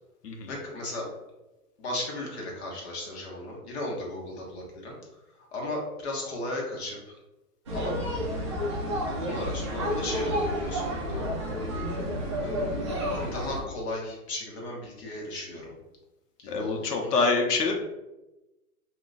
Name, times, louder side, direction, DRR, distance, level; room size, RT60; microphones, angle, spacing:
voice 1, 0.5-1.1 1.8-4.9 5.5-7.2 7.7-7.9 9.1-11.2 12.4-15.7 16.4-17.3, left 1 dB, 45° left, -2 dB, 0.8 m, -36 dB
sound 1, 7.7-13.6, equal, 20° right, 0.4 m, -30 dB
voice 2, 16.5-17.7, left 3 dB, 85° left, 3 dB, 0.8 m, -26 dB
2.4 x 2.3 x 3.8 m, 1.0 s
hypercardioid pair, 135°, 46 cm